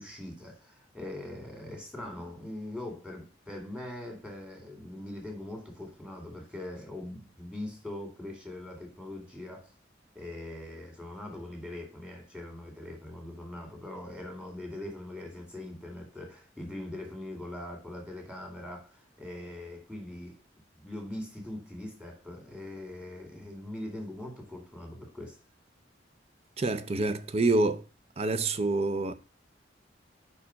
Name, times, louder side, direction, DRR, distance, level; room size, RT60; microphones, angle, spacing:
voice 1, 0.0-9.7 10.2-20.4 20.8-25.4, left 1 dB, 5° right, 2.1 m, -41 dB
voice 2, 26.6-27.8 28.2-29.1, right 2 dB, 35° right, 0.5 m, -27 dB
5.2 x 4.8 x 5.4 m
head